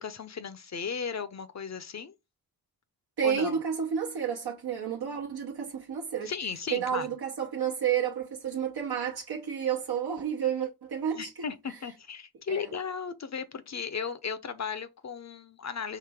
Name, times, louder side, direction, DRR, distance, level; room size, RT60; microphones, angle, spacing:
voice 1, 0.0-2.1 3.2-3.6 6.3-7.1 11.1-16.0, left 6 dB, 45° left, 0.6 m, -36 dB
voice 2, 3.2-6.3 6.7-11.3 11.7-11.8 12.5-12.7, right 8 dB, 75° right, 0.9 m, -31 dB
4.8 x 3.1 x 3.4 m
wide cardioid pair, 95°, 38 cm